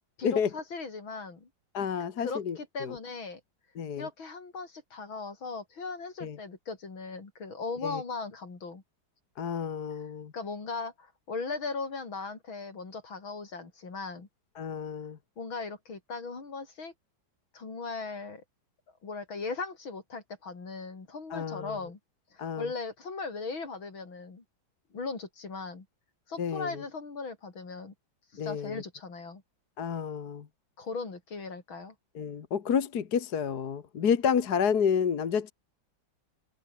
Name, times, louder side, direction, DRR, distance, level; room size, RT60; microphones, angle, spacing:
voice 1, 0.2-1.5 2.2-3.4 4.0-8.8 9.9-10.0 10.3-14.3 15.4-16.9 17.5-18.4 19.0-22.0 22.3-24.4 24.9-25.9 26.3-27.9 28.3-29.4 30.8-31.9, left 4 dB, 80° left, 4.9 m, -38 dB
voice 2, 1.7-2.9 3.8-4.1 6.2-6.4 7.8-8.0 9.4-10.3 14.6-15.2 21.3-21.8 22.4-22.7 26.4-26.7 28.4-28.8 29.8-30.5 32.2-35.5, left 7 dB, 55° left, 2.0 m, -30 dB
omnidirectional pair, 2.2 m